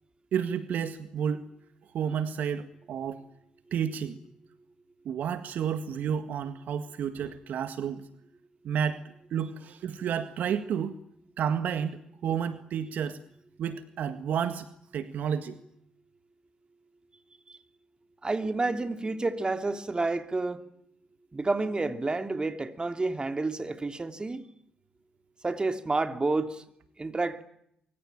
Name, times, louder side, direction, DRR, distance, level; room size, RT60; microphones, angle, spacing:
voice 1, 0.3-1.5 1.9-3.2 3.7-4.2 5.0-8.0 8.6-9.0 9.3-11.0 11.4-13.2 13.6-14.7 14.9-15.6, right 8 dB, 65° right, 1.8 m, -31 dB
voice 2, 18.2-20.6 21.3-24.5 25.4-26.6 27.0-27.4, right 3 dB, 30° right, 3.1 m, -29 dB
25.0 x 24.5 x 8.9 m
hypercardioid pair, 40°, 3 cm